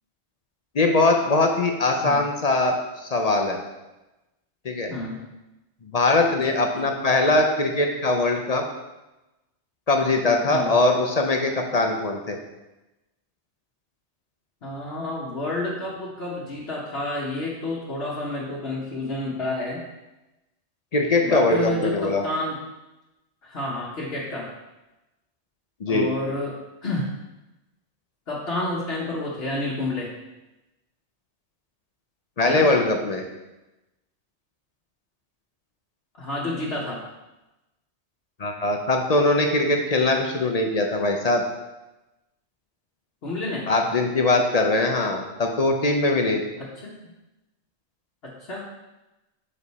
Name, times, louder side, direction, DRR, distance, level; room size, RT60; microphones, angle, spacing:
voice 1, 0.7-3.6 4.6-4.9 5.9-8.6 9.9-12.4 20.9-22.2 25.8-26.1 32.4-33.2 38.4-41.4 43.7-46.4, left 2 dB, 45° left, 3 dB, 0.6 m, -21 dB
voice 2, 4.9-5.2 6.3-6.9 10.5-10.7 14.6-19.8 21.2-22.6 23.4-24.5 25.9-27.1 28.3-30.1 32.4-32.7 36.1-37.0 43.2-43.7 46.6-47.1 48.2-48.7, left 2 dB, 65° left, -6 dB, 1.2 m, -30 dB
5.5 x 5.0 x 4.1 m, 1.0 s
omnidirectional pair, 1.2 m